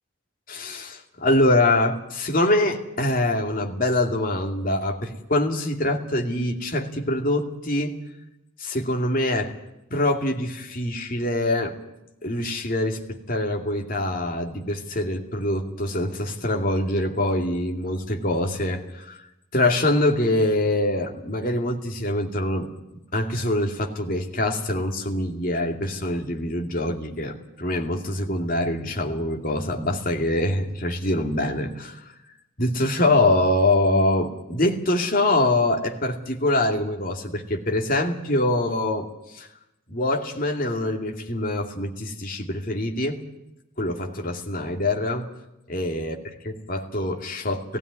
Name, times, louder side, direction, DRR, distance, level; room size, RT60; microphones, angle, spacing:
voice 1, 0.5-8.0 8.6-9.5 9.9-11.8 12.2-19.2 19.5-22.7 23.1-32.1 32.6-39.5 39.9-43.2 43.8-45.3 45.7-47.8, left 1 dB, 45° left, 2 dB, 2.5 m, -24 dB
17.0 x 16.5 x 9.7 m, 0.91 s
head